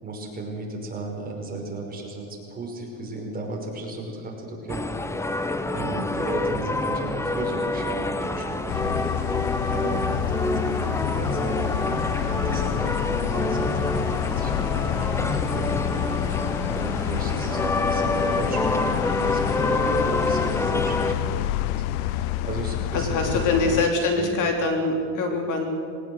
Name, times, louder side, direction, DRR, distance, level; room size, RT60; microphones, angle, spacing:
voice 1, 0.0-5.3 5.6-9.0 9.6-11.7 12.2-15.7 16.0-16.3 16.7-24.4, right 2 dB, 20° right, -1 dB, 5.4 m, -35 dB
sound 1, 4.7-21.1, left 2 dB, 5° left, 0.8 m, -27 dB
sound 2, 8.7-23.9, left 13 dB, 80° left, 0.7 m, -28 dB
voice 2, 22.9-25.7, left 3 dB, 45° left, 3 dB, 3.2 m, -24 dB
21.5 x 18.5 x 8.0 m, 2.4 s
supercardioid pair, 135°, 43 cm